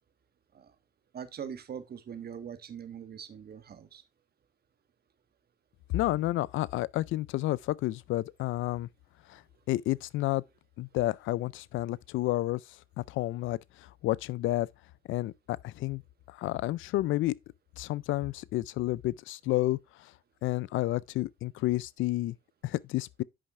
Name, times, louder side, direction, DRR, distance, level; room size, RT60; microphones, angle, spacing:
voice 1, 1.1-4.0, right 8 dB, 50° right, 1.4 m, -42 dB
voice 2, 5.9-8.9 9.3-9.4 9.7-10.4 10.8-12.6 13.0-14.7 15.1-16.0 16.3-17.4 17.8-20.1 20.4-22.4 22.6-23.2, left 16 dB, 80° left, 0.4 m, -30 dB
8.7 x 5.6 x 3.6 m
cardioid pair, 90°, 20 cm